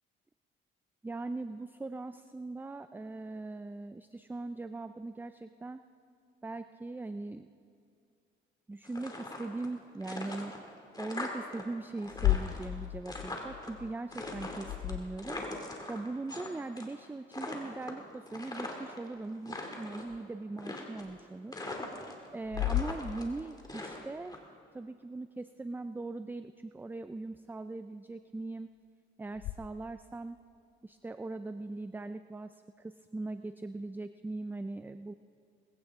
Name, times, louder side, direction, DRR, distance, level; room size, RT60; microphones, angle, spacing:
voice 1, 1.0-5.8 6.4-7.5 8.7-10.5 11.0-15.4 15.7-21.6 22.3-24.4 24.7-28.7 29.2-30.4 30.8-35.1, right 2 dB, 10° right, 11 dB, 0.4 m, -40 dB
sound 1, 8.8-9.7 10.0-11.6 11.9-13.7 14.1-16.5 16.8-17.0 17.3-19.0 19.3-20.1 20.6-21.2 21.5-22.3 22.5-24.4, left 2 dB, 20° left, 2.4 m, -41 dB
sound 2, 12.1-15.6 20.1-20.2 21.1-21.2 22.4-23.7 29.3-29.5, left 15 dB, 85° left, 0.5 m, -34 dB
19.5 x 16.0 x 3.6 m, 2.4 s
cardioid pair, 90°, 20 cm